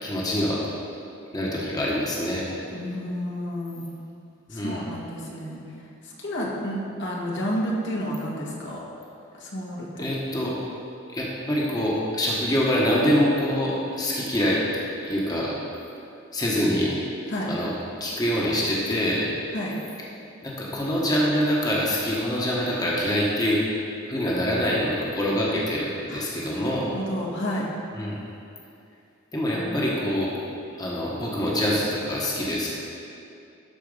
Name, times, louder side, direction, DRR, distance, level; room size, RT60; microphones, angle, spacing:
voice 1, 0.0-0.7 1.3-2.5 4.5-4.8 10.0-10.6 11.1-14.6 15.0-15.5 16.3-16.9 17.5-17.7 18.0-19.3 20.4-23.6 24.1-26.9 27.9-28.2 29.3-30.3 30.8-32.7, equal, 20° left, -5 dB, 1.2 m, -25 dB
voice 2, 2.7-3.8 4.5-5.6 6.0-8.8 9.4-10.1 17.3-17.5 19.5-19.7 26.1-27.6 29.5-29.9, equal, 65° left, -3 dB, 1.5 m, -31 dB
12.0 x 4.6 x 5.4 m, 2.6 s
head